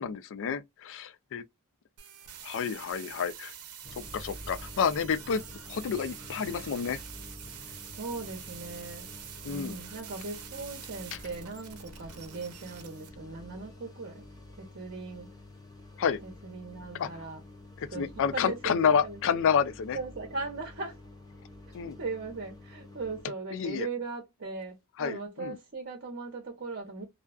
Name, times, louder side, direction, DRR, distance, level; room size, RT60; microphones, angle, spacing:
voice 1, 0.0-1.4 2.4-3.5 4.1-7.0 9.4-9.8 16.0-16.2 17.0-17.1 17.8-20.0 21.7-22.0 23.5-23.9 25.0-25.6, left 7 dB, 60° left, 0.4 m, -29 dB
sound 1, 2.0-13.1, right 9 dB, 85° right, 0.6 m, -46 dB
sound 2, 3.8-23.3, left 1 dB, 15° left, 0.6 m, -49 dB
voice 2, 8.0-9.1 9.5-14.2 14.6-15.3 16.2-17.4 17.9-18.1 18.3-19.4 19.9-21.0 22.0-27.0, right 3 dB, 50° right, 0.8 m, -39 dB
2.4 x 2.3 x 2.3 m
head